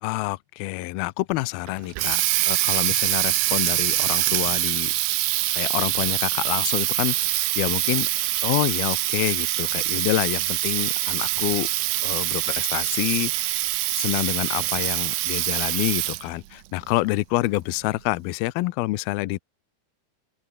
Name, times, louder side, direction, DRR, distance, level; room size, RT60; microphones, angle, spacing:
voice 1, 0.0-2.2 2.5-4.9 5.5-8.1 8.4-11.7 12.0-13.6 14.0-19.4, left 19 dB, 80° left, 2.5 m, -27 dB
Water tap faucet, 1.7-16.4, right 17 dB, 85° right, 3.0 m, -24 dB
open air
omnidirectional pair, 4.6 m